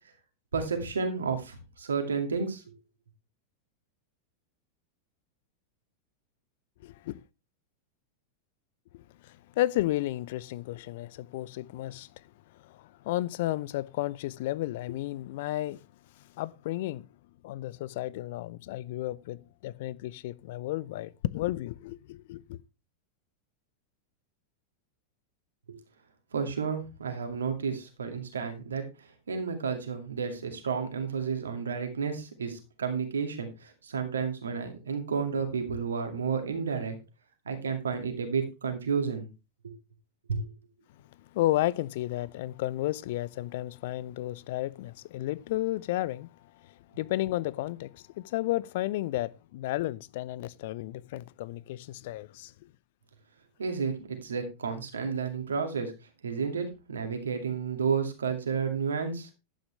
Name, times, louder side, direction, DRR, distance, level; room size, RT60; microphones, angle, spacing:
voice 1, 0.5-2.6 25.7-25.8 26.3-37.0 37.5-39.3 39.6-39.7 40.3-40.5 53.6-55.9 56.2-59.3, right 5 dB, 70° right, 2.2 m, -31 dB
voice 2, 6.8-7.2 8.9-12.2 12.6-15.8 16.2-17.0 17.4-22.6 41.3-46.3 46.6-52.5, left 16 dB, 50° left, 0.5 m, -33 dB
11.0 x 9.0 x 3.2 m
figure-of-eight pair, 90°, 0 cm